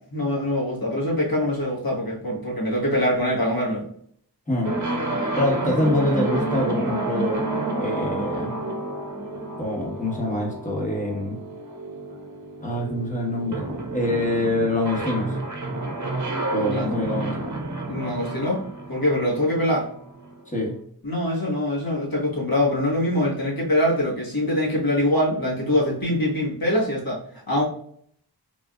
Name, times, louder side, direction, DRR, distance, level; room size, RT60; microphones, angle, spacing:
voice 1, 0.1-3.8 16.7-16.9 17.9-19.9 21.0-27.6, left 1 dB, 65° left, -4 dB, 1.4 m, -24 dB
sound 1, 4.6-20.4, right 2 dB, 50° right, 0.7 m, -30 dB
voice 2, 5.2-7.4 7.8-8.5 9.6-11.4 12.6-13.6 13.9-15.4 16.5-17.4 20.5-20.7, left 1 dB, 20° left, -1 dB, 1.1 m, -25 dB
3.4 x 2.5 x 2.2 m, 0.63 s
wide cardioid pair, 45°, 39 cm